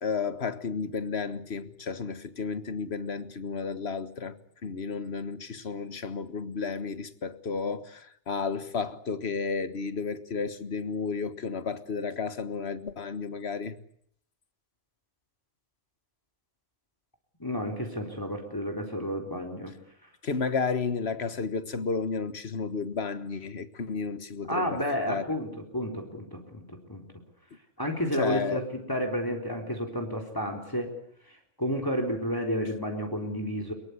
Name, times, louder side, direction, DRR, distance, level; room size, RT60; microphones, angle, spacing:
voice 1, 0.0-4.4 4.6-13.8 20.2-24.8 25.1-25.2 28.2-28.6, left 5 dB, 60° left, 1.7 m, -32 dB
voice 2, 17.4-19.7 24.5-26.6 26.9-27.0 27.8-30.9 31.2-33.7, equal, 15° left, 4.0 m, -31 dB
24.0 x 22.0 x 8.2 m
omnidirectional pair, 1.2 m